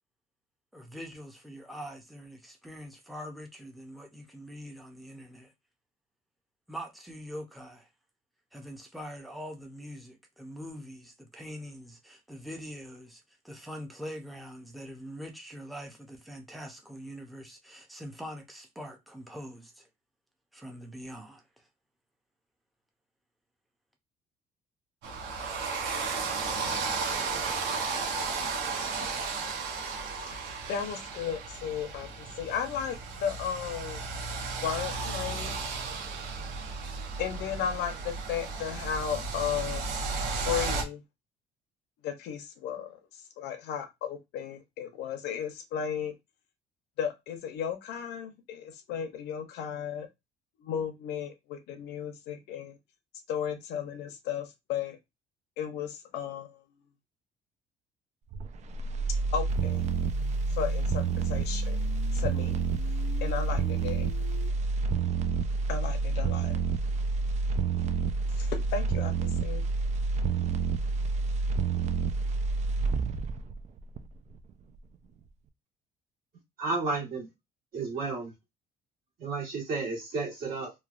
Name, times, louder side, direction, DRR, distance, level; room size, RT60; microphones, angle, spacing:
voice 1, 0.7-5.5 6.7-7.9 8.5-19.9 20.5-21.7, equal, ahead, 0.6 m, -43 dB
sound 1, 25.0-40.8, right 4 dB, 80° right, 0.8 m, -34 dB
voice 2, 30.7-34.0 34.6-35.5 37.2-41.0 42.0-46.1 47.0-50.1 50.6-52.8 53.3-55.0 55.6-56.6 59.3-59.8 60.5-61.8 62.1-62.6 63.2-64.1 65.7-66.6 68.4-69.6, left 8 dB, 85° left, 0.7 m, -35 dB
sound 2, 58.3-74.4 74.8-74.9, right 4 dB, 45° right, 0.4 m, -29 dB
sound 3, 59.5-64.5, left 8 dB, 55° left, 0.5 m, -47 dB
voice 3, 76.6-77.3 77.7-78.3 79.2-80.7, right 3 dB, 60° right, 1.5 m, -32 dB
3.1 x 2.2 x 2.4 m
cardioid pair, 110°, 17 cm